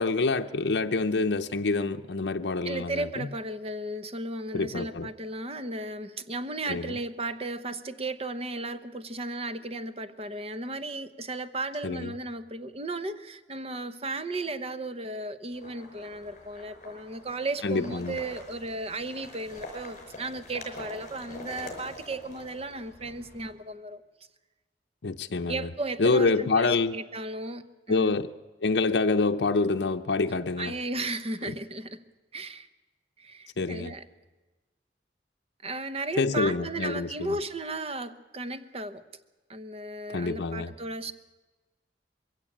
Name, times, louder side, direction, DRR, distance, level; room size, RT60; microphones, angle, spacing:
voice 1, 0.0-3.3 4.5-5.1 6.7-7.0 11.8-12.1 17.6-18.2 25.0-25.7 26.0-27.0 27.9-28.3 28.6-30.7 31.5-31.6 33.6-33.9 36.2-37.4 40.1-40.7, left 3 dB, 75° left, 5 dB, 0.7 m, -26 dB
voice 2, 2.6-24.0 25.5-28.1 30.6-32.0 32.3-32.7 33.2-34.0 35.6-39.0 39.5-41.1, right 2 dB, 35° right, 11 dB, 0.9 m, -35 dB
sound 1, 15.5-23.5, left 2 dB, 45° left, 5.3 m, -45 dB
21.5 x 16.0 x 8.6 m, 1.2 s
head